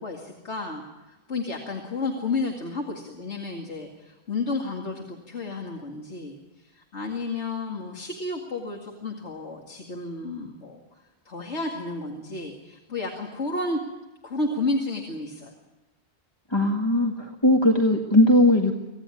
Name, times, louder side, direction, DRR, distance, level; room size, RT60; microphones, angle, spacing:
voice 1, 0.0-10.8 11.3-13.8 14.2-15.5, left 3 dB, 85° left, 1 dB, 2.5 m, -32 dB
voice 2, 16.5-18.7, left 1 dB, 25° left, 1 dB, 1.7 m, -19 dB
25.5 x 17.0 x 9.8 m, 1.1 s
omnidirectional pair, 1.1 m